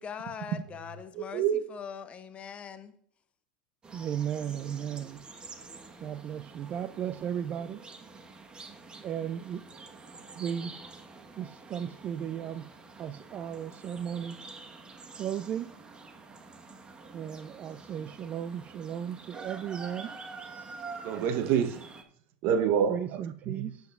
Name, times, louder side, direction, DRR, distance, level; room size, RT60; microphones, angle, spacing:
voice 1, 0.0-2.9, left 7 dB, 30° left, 1.0 m, -42 dB
voice 2, 1.1-1.6 21.0-21.8 22.4-23.2 23.5-23.6, right 8 dB, 55° right, 0.9 m, -27 dB
sound 1, 3.8-22.0, right 4 dB, 20° right, 1.1 m, -47 dB
voice 3, 3.9-5.2 6.0-7.8 9.0-9.6 10.4-10.8 11.4-12.7 13.0-14.4 15.2-15.7 17.1-20.1 22.9-23.7, right 9 dB, 35° right, 0.4 m, -35 dB
11.5 x 8.0 x 2.4 m
hypercardioid pair, 100°, 4 cm